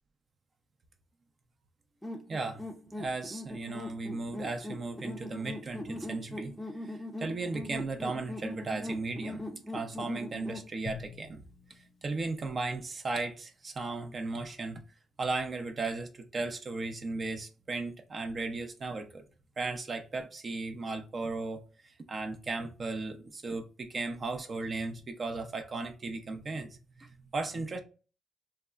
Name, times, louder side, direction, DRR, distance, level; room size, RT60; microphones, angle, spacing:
sound 1, 2.0-10.7, left 1 dB, 5° left, 0.5 m, -41 dB
voice 1, 2.3-2.6 3.0-6.5 6.8-9.5 9.7-11.4 12.0-14.8 15.2-19.2 19.6-27.8, right 3 dB, 40° right, 0.5 m, -36 dB
Drum, 10.9-13.2, left 5 dB, 55° left, 0.4 m, -48 dB
3.5 x 2.0 x 2.3 m
cardioid pair, 90°, 0 cm